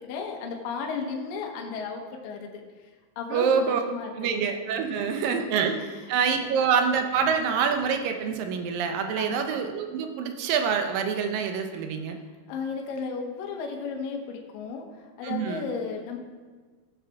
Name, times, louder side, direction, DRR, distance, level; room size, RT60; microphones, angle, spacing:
voice 1, 0.0-2.9 3.2-4.4 5.2-5.5 6.4-6.6 9.2-9.5 12.5-16.2, left 5 dB, 70° left, 1 dB, 2.6 m, -34 dB
voice 2, 3.3-3.8 4.2-5.8 6.1-12.2 15.2-15.7, right 6 dB, 75° right, 6 dB, 2.3 m, -26 dB
16.5 x 7.3 x 3.5 m, 1.5 s
omnidirectional pair, 4.5 m